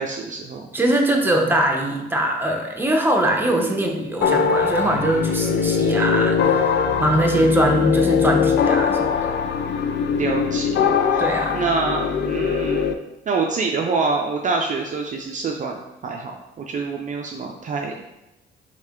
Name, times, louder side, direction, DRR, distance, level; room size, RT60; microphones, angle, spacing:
voice 1, 0.0-0.7 3.5-3.9 10.2-11.2 11.5-13.0 13.3-15.7 16.0-16.3 16.6-18.1, right 4 dB, 40° right, 1 dB, 0.4 m, -26 dB
voice 2, 0.7-9.3 11.2-11.6, right 1 dB, 10° right, 1 dB, 0.8 m, -22 dB
sound 1, 4.2-12.9, left 6 dB, 60° left, 0.4 m, -21 dB
3.6 x 3.3 x 3.6 m, 0.96 s
cardioid pair, 90°, 20 cm